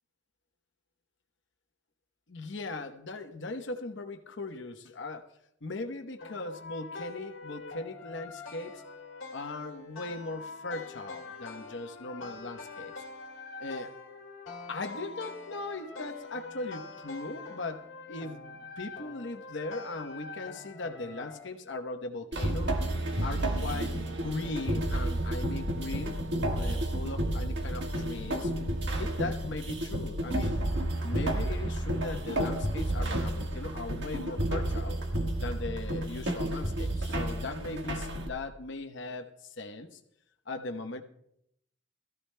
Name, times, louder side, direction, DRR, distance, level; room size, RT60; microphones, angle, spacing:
voice 1, 2.3-5.3 5.6-8.8 9.3-12.9 13.6-13.9 14.7-22.8 23.2-28.5 29.0-30.6 31.0-35.0 35.4-40.0 40.5-41.0, left 2 dB, 65° left, 6 dB, 1.0 m, -39 dB
sound 1, 6.2-21.5, left 3 dB, 80° left, 1.6 m, -44 dB
sound 2, 22.3-38.3, right 1 dB, 65° right, 1.5 m, -31 dB
21.5 x 14.5 x 2.2 m, 0.77 s
head